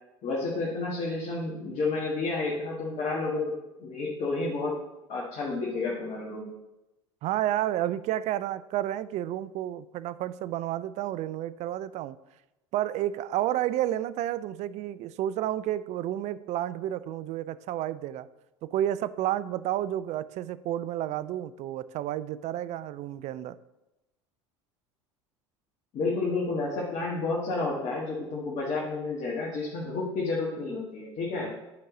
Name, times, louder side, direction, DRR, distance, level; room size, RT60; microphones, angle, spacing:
voice 1, 0.2-3.5 3.8-4.8 5.1-6.5 25.9-31.5, left 3 dB, 45° left, -3 dB, 1.6 m, -30 dB
voice 2, 7.2-12.2 12.7-18.3 18.6-23.6, right 12 dB, 45° right, 16 dB, 0.4 m, -31 dB
8.7 x 4.6 x 3.8 m, 0.97 s
hypercardioid pair, 75°, 16 cm